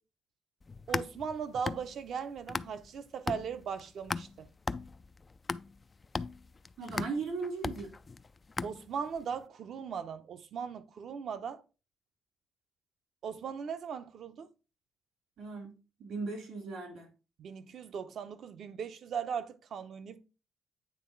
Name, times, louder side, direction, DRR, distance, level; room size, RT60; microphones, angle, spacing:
sound 1, 0.6-3.0 3.3-9.2, left 4 dB, 30° left, 0.3 m, -38 dB
voice 1, 0.9-4.5 8.6-11.6 13.2-14.5 17.4-20.2, right 7 dB, 65° right, 0.8 m, -38 dB
voice 2, 6.8-7.9 15.4-17.1, right 4 dB, 80° right, 3.2 m, -37 dB
9.1 x 3.3 x 4.5 m
cardioid pair, 90°, 0 cm